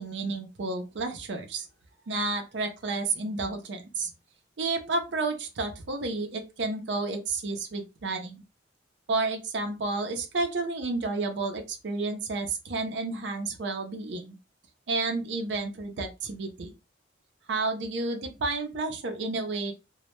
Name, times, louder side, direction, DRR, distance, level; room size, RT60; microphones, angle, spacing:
voice 1, 0.0-1.7 2.1-4.1 4.6-8.4 9.1-14.3 14.9-16.7 17.5-19.7, right 3 dB, 70° right, 4 dB, 0.5 m, -31 dB
2.2 x 2.0 x 2.9 m, 0.27 s
head